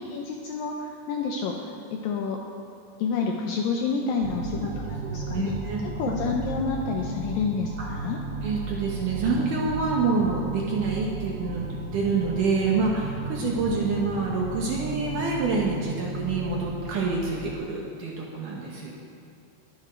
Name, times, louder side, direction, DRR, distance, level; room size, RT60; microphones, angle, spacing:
voice 1, 0.0-2.4 3.0-5.6 5.8-8.2, left 5 dB, 85° left, 1 dB, 2.0 m, -29 dB
sound 1, 4.2-17.6, right 4 dB, 85° right, 3.2 m, -35 dB
voice 2, 5.0-5.8 7.8-7.9 8.4-18.9, right 4 dB, 65° right, -2 dB, 2.2 m, -27 dB
21.5 x 8.3 x 4.5 m, 2.4 s
omnidirectional pair, 5.0 m